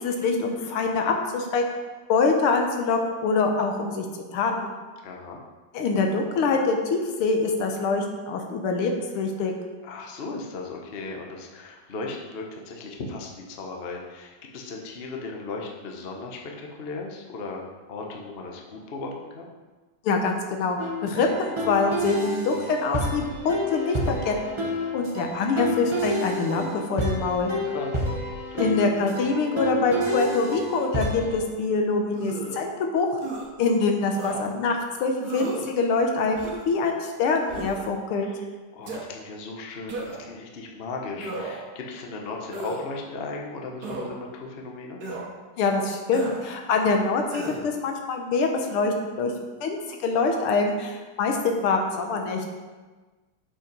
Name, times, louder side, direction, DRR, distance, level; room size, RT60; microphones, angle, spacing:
voice 1, 0.0-1.6 2.1-4.1 4.3-4.7 5.7-9.5 20.0-27.5 28.6-33.1 33.6-38.3 45.6-49.3 49.6-52.4, left 4 dB, 85° left, 3 dB, 1.9 m, -25 dB
voice 2, 5.0-5.4 9.8-17.6 17.9-19.5 27.6-28.0 28.5-28.7 38.2-38.5 38.7-45.0, left 3 dB, 45° left, 0 dB, 0.8 m, -36 dB
sound 1, 20.8-31.4, left 1 dB, 25° right, 0.6 m, -29 dB
sound 2, 32.1-32.6 33.2-33.5 34.2-34.4 35.2-35.7 36.3-36.7 37.5-37.9 38.8-39.0 39.9-40.3 41.2-41.7 42.5-42.9 43.8-44.1 45.0-45.3 46.1-46.4 47.3-47.6, right 3 dB, 50° right, 1.6 m, -34 dB
7.0 x 5.4 x 5.3 m, 1.3 s
omnidirectional pair, 2.4 m